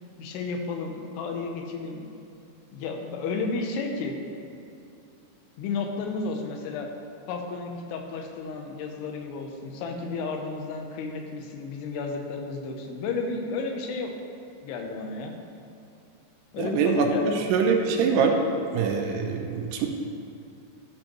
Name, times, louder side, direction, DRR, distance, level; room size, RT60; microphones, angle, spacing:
voice 1, 0.2-2.1 2.7-4.2 5.6-6.9 7.3-14.2 14.6-15.3 16.5-17.4, left 4 dB, 85° left, 3 dB, 2.8 m, -32 dB
voice 2, 16.6-17.1 17.5-18.3 18.7-19.9, right 6 dB, 85° right, 3 dB, 2.8 m, -23 dB
13.0 x 5.3 x 3.0 m, 2.6 s
omnidirectional pair, 4.7 m